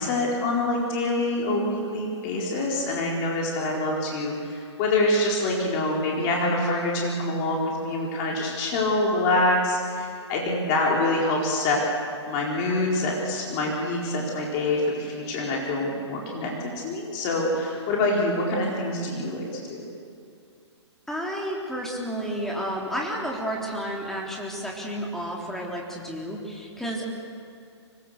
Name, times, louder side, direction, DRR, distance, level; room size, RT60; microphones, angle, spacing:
voice 1, 0.0-11.8 12.3-19.9, left 2 dB, 35° left, -2 dB, 4.4 m, -25 dB
voice 2, 21.1-27.1, equal, ahead, -2 dB, 3.6 m, -31 dB
25.5 x 20.0 x 6.8 m, 2.4 s
figure-of-eight pair, 125°, 15 cm